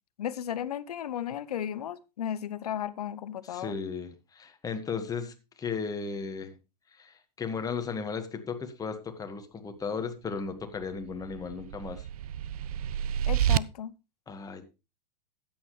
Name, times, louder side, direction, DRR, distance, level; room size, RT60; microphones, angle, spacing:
voice 1, 0.2-3.7 13.3-13.9, left 10 dB, 70° left, 0.8 m, -34 dB
voice 2, 3.4-6.6 6.9-12.1 14.3-14.7, left 5 dB, 15° left, 1.6 m, -35 dB
sound 1, 10.8-13.6, right 11 dB, 65° right, 0.5 m, -29 dB
13.0 x 9.1 x 3.2 m
hypercardioid pair, 100°, 20 cm